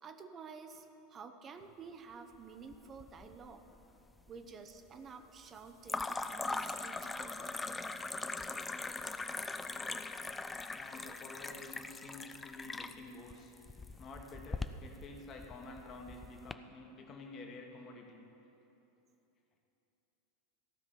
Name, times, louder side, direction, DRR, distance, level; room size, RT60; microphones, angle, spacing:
voice 1, 0.0-3.6 4.3-7.6 8.5-8.6, right 5 dB, 30° right, 7 dB, 0.7 m, -51 dB
sound 1, 2.7-3.5 3.8-4.4 5.9-16.5, left 3 dB, 15° left, 0.4 m, -41 dB
voice 2, 10.7-13.5 14.0-18.2, left 2 dB, 35° left, 1 dB, 1.4 m, -50 dB
14.5 x 5.7 x 6.9 m, 3.0 s
figure-of-eight pair, 85°, 0 cm